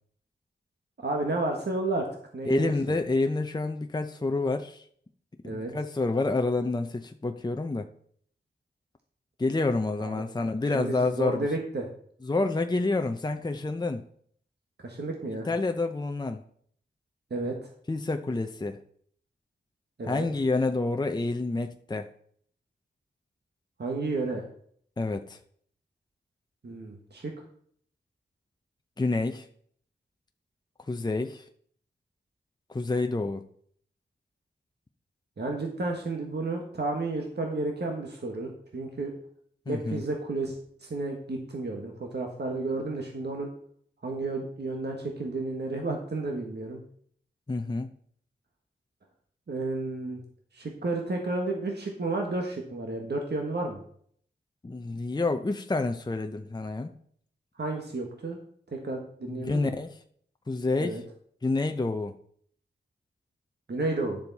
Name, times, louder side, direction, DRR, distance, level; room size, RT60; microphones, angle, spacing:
voice 1, 1.0-2.1 2.3-3.0 5.4-5.7 10.0-10.2 10.7-11.9 14.8-15.5 17.3-17.5 20.0-20.2 23.8-24.4 26.6-27.3 35.4-39.1 39.7-43.5 44.0-46.8 49.5-50.2 50.5-53.8 57.6-58.4 58.7-59.8 60.8-61.0 63.7-64.2, right 2 dB, 60° right, 1.6 m, -32 dB
voice 2, 2.5-4.9 5.4-7.9 9.4-11.5 12.2-14.0 15.4-16.4 17.9-18.8 20.1-22.1 25.0-25.4 29.0-29.5 30.9-31.4 32.7-33.4 39.7-40.0 47.5-47.9 54.6-56.9 59.3-60.0 60.5-61.0 61.4-62.1, left 3 dB, 20° left, 0.6 m, -28 dB
10.5 x 6.9 x 4.1 m
cardioid pair, 55°, 19 cm